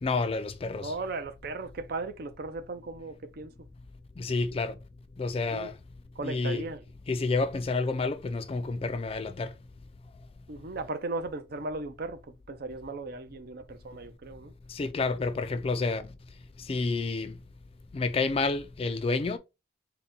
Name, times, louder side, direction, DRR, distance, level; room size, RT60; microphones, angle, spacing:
voice 1, 0.0-0.9 4.2-4.8 5.2-5.8 6.2-6.6 7.1-9.5 14.7-16.1 16.6-17.4 17.9-19.4, left 3 dB, 30° left, 0.3 m, -29 dB
voice 2, 0.8-3.5 5.5-5.7 6.2-6.8 10.5-12.2 12.5-14.5, right 3 dB, 55° right, 0.5 m, -37 dB
3.9 x 2.2 x 4.3 m
head